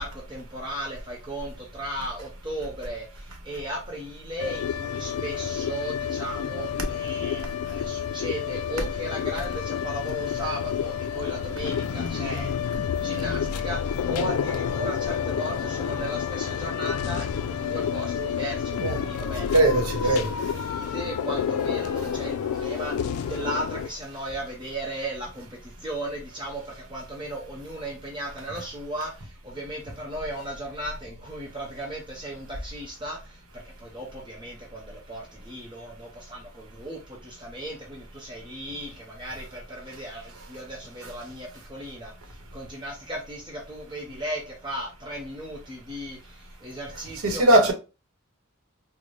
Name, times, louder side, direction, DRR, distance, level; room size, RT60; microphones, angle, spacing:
voice 1, 0.0-12.5 12.9-19.5 19.9-47.7, right 1 dB, 20° right, 0.7 m, -36 dB
sound 1, 4.4-23.9, left 8 dB, 85° left, 0.3 m, -29 dB
voice 2, 19.5-20.3 47.2-47.7, right 1 dB, 85° right, 0.9 m, -20 dB
3.9 x 2.1 x 3.1 m
head